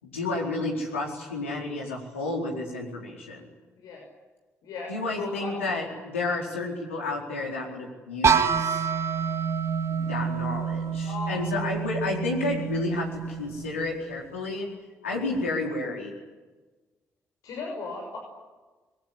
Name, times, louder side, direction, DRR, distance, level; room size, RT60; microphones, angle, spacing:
voice 1, 0.0-3.5 4.9-8.9 9.9-14.7 15.0-16.1, left 2 dB, 80° left, -1 dB, 4.5 m, -31 dB
voice 2, 4.6-5.5 10.1-10.5 11.1-11.7 17.4-18.2, left 3 dB, 60° left, 1 dB, 6.1 m, -37 dB
sound 1, 8.2-14.0, right 6 dB, 40° right, 1.8 m, -27 dB
25.5 x 22.5 x 10.0 m, 1.3 s
figure-of-eight pair, 45°, 7 cm